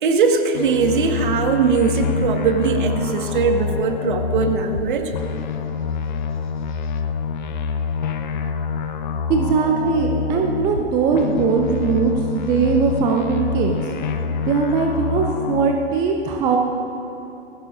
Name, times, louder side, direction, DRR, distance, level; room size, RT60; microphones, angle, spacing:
voice 1, 0.0-5.1, right 5 dB, 50° right, 5 dB, 1.5 m, -20 dB
sound 1, 0.5-4.8 5.1-10.8 11.1-15.7, left 6 dB, 45° left, 0.8 m, -26 dB
voice 2, 9.3-13.8 14.5-16.6, right 5 dB, 15° right, 2 dB, 0.5 m, -20 dB
20.0 x 16.0 x 2.4 m, 2.8 s
figure-of-eight pair, 115°, 33 cm